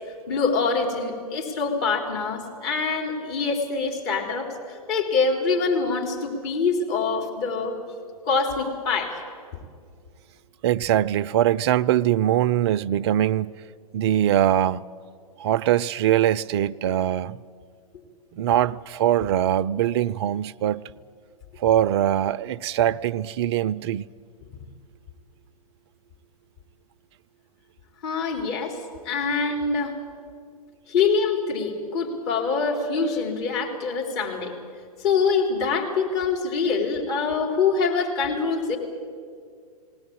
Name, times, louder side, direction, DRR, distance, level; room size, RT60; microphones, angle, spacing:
voice 1, 0.3-7.8 8.3-9.2 28.0-28.8 29.1-29.9 30.9-34.5 35.0-38.8, left 4 dB, 45° left, 4.2 m, -25 dB
voice 2, 10.6-13.5 13.9-14.8 15.4-17.4 18.3-20.9 21.6-24.0, right 11 dB, 45° right, 0.5 m, -22 dB
20.0 x 18.5 x 8.9 m
figure-of-eight pair, 110°, 19 cm